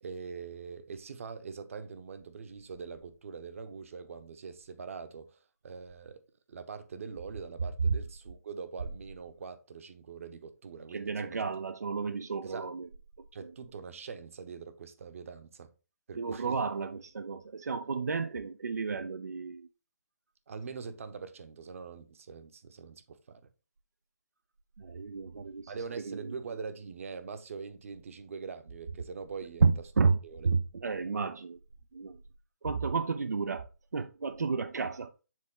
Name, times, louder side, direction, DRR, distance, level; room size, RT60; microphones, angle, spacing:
voice 1, 0.0-6.2 6.5-11.4 12.4-12.7 13.3-15.7 16.1-16.6 20.5-23.5 25.7-29.6 30.2-30.5, right 5 dB, 55° right, 1.0 m, -43 dB
voice 2, 10.9-12.9 13.4-13.5 16.1-19.7 24.8-26.3 29.6-30.2 30.4-31.6 31.9-32.2 32.6-35.1, right 4 dB, 85° right, 0.6 m, -31 dB
7.5 x 3.8 x 3.7 m
hypercardioid pair, 160°, 9 cm